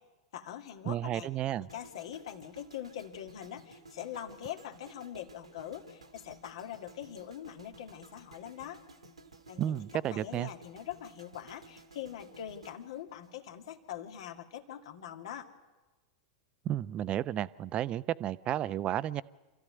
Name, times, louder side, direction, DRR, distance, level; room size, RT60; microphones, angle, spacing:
voice 1, 0.3-1.3 1.6-8.8 9.5-9.8 10.1-15.5, left 10 dB, 65° left, 5 dB, 2.1 m, -43 dB
voice 2, 0.9-1.7 9.6-10.5 16.6-19.2, right 12 dB, 35° right, 18 dB, 0.7 m, -32 dB
sound 1, 1.7-13.9 14.1-14.4, right 2 dB, 90° right, 2.2 m, -55 dB
27.0 x 14.5 x 9.5 m, 1.2 s
figure-of-eight pair, 95°, 3 cm